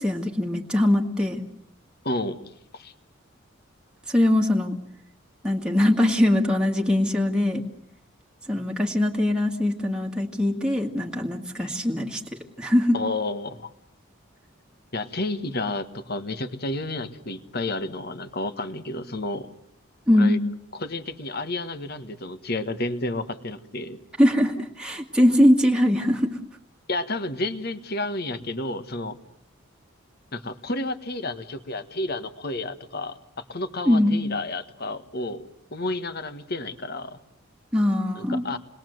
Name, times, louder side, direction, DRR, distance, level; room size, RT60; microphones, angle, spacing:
voice 1, 0.0-1.4 4.1-4.7 5.4-7.6 8.5-12.2 12.6-13.0 20.1-20.4 24.2-26.3 33.9-34.2 37.7-38.4, left 1 dB, 5° right, 0 dB, 1.8 m, -21 dB
voice 2, 2.0-2.4 2.7-2.9 12.9-13.7 14.9-19.5 20.1-20.4 20.7-24.0 26.9-29.2 30.3-33.2 33.5-35.4 35.7-37.2 38.1-38.6, left 2 dB, 50° left, 10 dB, 1.5 m, -31 dB
28.0 x 21.0 x 7.8 m, 0.72 s
head